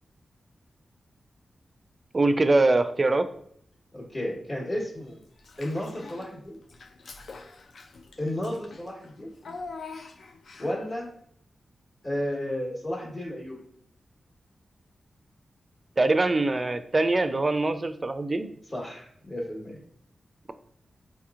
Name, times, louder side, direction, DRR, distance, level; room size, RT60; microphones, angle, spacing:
voice 1, 2.1-3.2 16.0-18.5, right 2 dB, 40° right, 10 dB, 0.4 m, -23 dB
voice 2, 3.9-5.2 5.6-6.6 8.2-9.3 10.6-11.1 12.0-13.6 18.7-19.8, left 1 dB, 45° left, -5 dB, 1.2 m, -32 dB
Child speech kid speaking / Bathtub (filling or washing), 5.4-6.3 6.7-10.9, left 4 dB, 75° left, 0.3 m, -44 dB
4.1 x 2.8 x 2.4 m, 0.67 s
cardioid pair, 50°, 0 cm